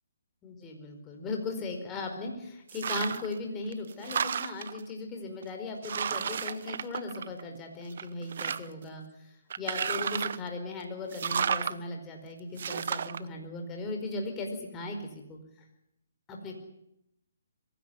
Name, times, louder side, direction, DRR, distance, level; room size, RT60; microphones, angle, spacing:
voice 1, 0.4-15.0 15.3-15.4 16.3-16.5, left 2 dB, 15° left, 2 dB, 4.8 m, -37 dB
sound 1, 2.7-3.3 3.7-4.8 5.4-5.5 5.8-7.6 7.9-8.8 9.5-10.5 11.1-11.7 12.6-13.2, right 7 dB, 55° right, 0.9 m, -32 dB
23.5 x 16.5 x 9.5 m, 0.81 s
hypercardioid pair, 155°, 0 cm